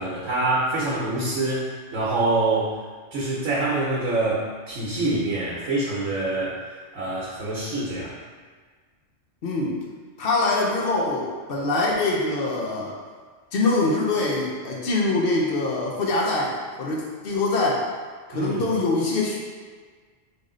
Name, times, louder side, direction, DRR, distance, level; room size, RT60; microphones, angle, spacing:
voice 1, 0.0-2.7 3.1-6.5 6.9-8.1 18.3-18.6, right 2 dB, 85° right, -6 dB, 1.1 m, -25 dB
voice 2, 9.4-9.8 10.2-13.0 13.5-17.9 18.3-19.4, left 2 dB, 55° left, -3 dB, 0.7 m, -24 dB
3.3 x 2.7 x 3.6 m, 1.5 s
omnidirectional pair, 1.3 m